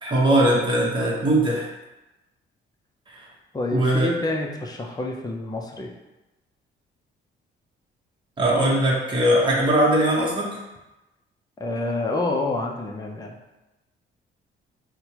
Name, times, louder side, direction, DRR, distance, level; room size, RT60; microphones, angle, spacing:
voice 1, 0.0-1.7 3.1-3.3 3.7-4.1 8.4-10.6, right 1 dB, 25° right, -4 dB, 0.9 m, -20 dB
voice 2, 3.5-5.9 11.6-13.3, left 2 dB, 20° left, 1 dB, 0.5 m, -28 dB
4.3 x 2.1 x 2.8 m, 1.0 s
cardioid pair, 90°, 20 cm